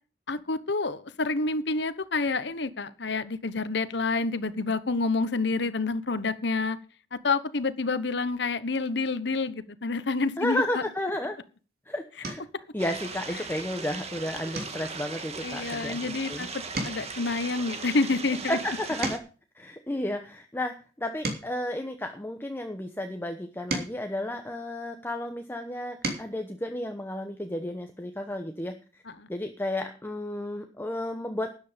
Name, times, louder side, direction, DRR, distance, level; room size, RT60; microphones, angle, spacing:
voice 1, 0.3-6.8 7.1-10.6 15.4-18.6 29.2-29.3, left 3 dB, 70° left, 14 dB, 1.1 m, -28 dB
voice 2, 10.4-11.4 11.9-12.4 12.7-16.5 18.5-19.2 19.6-29.0 29.3-31.6, left 1 dB, 10° left, 5 dB, 1.0 m, -32 dB
sound 1, 11.4-11.6 12.2-12.6 13.1-13.5 13.8-14.0 14.5-16.3 16.6-19.5 20.1-22.6 23.3-25.1 25.7-26.4 27.8-27.9 28.2-28.4, right 2 dB, 55° right, 3.1 m, -38 dB
sound 2, 12.8-19.2, right 4 dB, 35° right, 1.8 m, -38 dB
13.0 x 9.5 x 5.2 m, 0.37 s
head